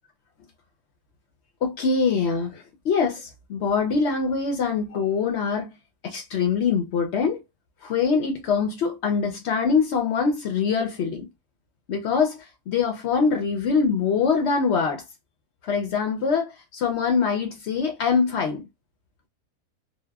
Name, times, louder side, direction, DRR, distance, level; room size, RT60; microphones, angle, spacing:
voice 1, 1.6-5.7 6.0-7.4 7.8-11.3 11.9-15.0 15.6-18.6, left 5 dB, 70° left, 0.6 m, -24 dB
2.8 x 2.0 x 2.2 m
omnidirectional pair, 1.6 m